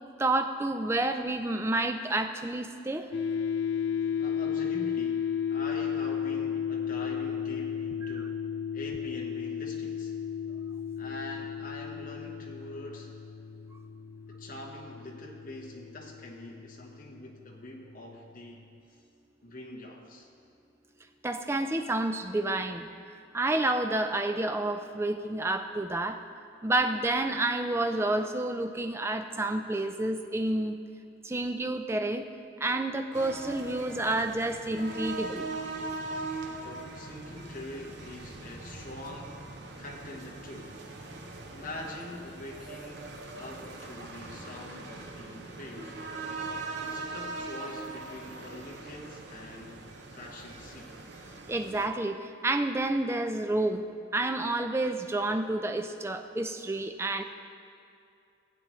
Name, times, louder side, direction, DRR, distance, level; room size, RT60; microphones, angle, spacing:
voice 1, 0.2-3.1 8.0-8.1 21.2-22.9 23.3-26.2 26.6-30.8 31.2-32.3 32.6-35.5 51.5-53.8 54.1-57.2, right 2 dB, 15° right, 7 dB, 0.3 m, -29 dB
sound 1, 3.1-18.3, left 8 dB, 65° left, 0.5 m, -34 dB
voice 2, 4.2-8.5 8.7-10.2 11.0-13.1 14.3-19.0 19.4-20.3 36.6-39.4 39.8-40.8 41.5-43.1 43.3-46.0 46.8-50.9, left 1 dB, 45° left, -1 dB, 1.2 m, -44 dB
sound 2, 33.1-51.9, right 3 dB, 60° right, 0.8 m, -41 dB
15.5 x 8.4 x 3.1 m, 2.5 s
head